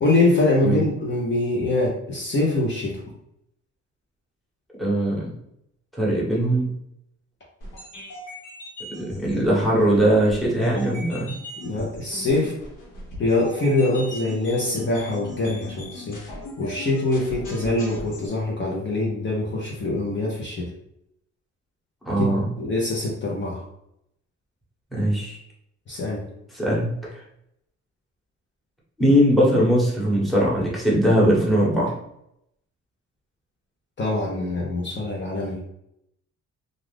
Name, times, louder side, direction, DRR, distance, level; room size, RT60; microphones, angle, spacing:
voice 1, 0.0-3.0 11.6-12.5 13.2-16.2 16.6-20.7 22.2-23.6 25.9-26.2 34.0-35.6, left 2 dB, 40° left, -3 dB, 0.8 m, -24 dB
voice 2, 4.8-5.3 6.0-6.7 9.0-11.4 22.0-22.5 24.9-25.4 26.5-27.2 29.0-31.9, equal, ahead, -5 dB, 1.1 m, -20 dB
sound 1, 7.6-18.3, left 1 dB, 90° left, 1.2 m, -39 dB
2.5 x 2.4 x 3.4 m, 0.77 s
cardioid pair, 90°, 30 cm